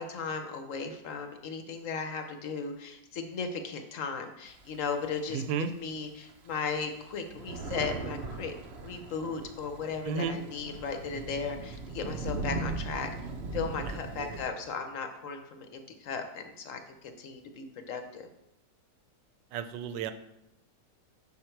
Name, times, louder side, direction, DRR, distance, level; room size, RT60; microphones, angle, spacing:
voice 1, 0.0-13.1 13.5-18.3, left 5 dB, 60° left, 6 dB, 0.9 m, -36 dB
Thunder, 4.5-5.7 6.3-6.4 6.6-14.4, right 3 dB, 65° right, 0.6 m, -39 dB
voice 2, 5.3-5.7 10.0-10.4 13.9-14.4 19.5-20.1, right 6 dB, 85° right, 10 dB, 1.2 m, -33 dB
5.8 x 5.7 x 4.4 m, 0.85 s
omnidirectional pair, 1.9 m